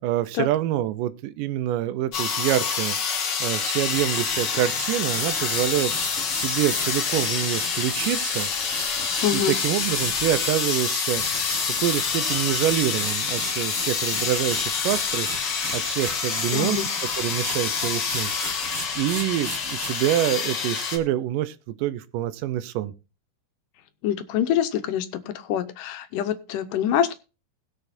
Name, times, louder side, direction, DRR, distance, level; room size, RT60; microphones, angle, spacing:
voice 1, 0.0-3.0 3.4-5.9 6.4-8.5 9.3-11.5 11.8-22.9, right 13 dB, 90° right, 2.4 m, -26 dB
sound 1, 2.1-21.0, left 6 dB, 50° left, 1.4 m, -27 dB
sound 2, 2.4-2.5 3.8-16.7 17.0-19.9, right 2 dB, 25° right, 2.7 m, -37 dB
voice 2, 9.2-9.6 16.5-16.9 24.0-27.1, left 9 dB, 85° left, 2.4 m, -25 dB
20.5 x 6.9 x 2.7 m
omnidirectional pair, 3.7 m